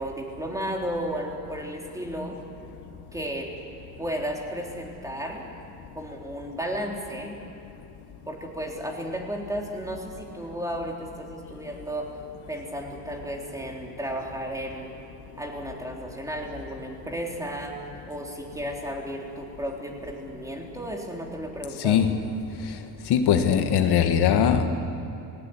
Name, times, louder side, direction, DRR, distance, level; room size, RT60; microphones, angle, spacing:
voice 1, 0.0-2.4 3.1-3.5 4.0-5.4 6.0-7.4 8.3-12.1 12.5-14.9 15.4-17.8 18.1-22.0, right 1 dB, 10° right, 0 dB, 3.7 m, -33 dB
voice 2, 23.1-24.6, left 8 dB, 70° left, 7 dB, 1.6 m, -20 dB
19.0 x 18.0 x 9.6 m, 2.8 s
cardioid pair, 95°, 42 cm